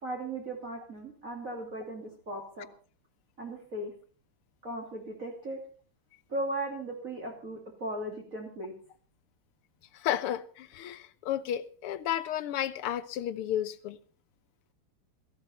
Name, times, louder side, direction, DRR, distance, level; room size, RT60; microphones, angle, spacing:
voice 1, 0.0-2.7 3.4-3.9 4.6-5.6 6.3-8.7, right 1 dB, 40° right, 3.1 m, -37 dB
voice 2, 9.9-14.0, left 11 dB, 90° left, 1.8 m, -32 dB
17.0 x 15.5 x 4.3 m
omnidirectional pair, 2.4 m